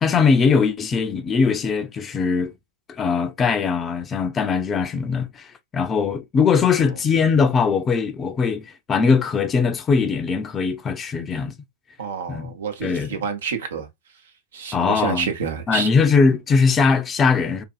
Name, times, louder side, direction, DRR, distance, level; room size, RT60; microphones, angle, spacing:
voice 1, 0.0-2.5 2.9-5.5 5.7-11.5 12.3-12.5 12.8-13.2 14.7-15.3 15.7-17.6, left 5 dB, 25° left, 0.4 m, -20 dB
voice 2, 12.0-13.9 14.5-15.9, right 6 dB, 75° right, 0.7 m, -28 dB
2.6 x 2.6 x 2.3 m
hypercardioid pair, 105°, 0 cm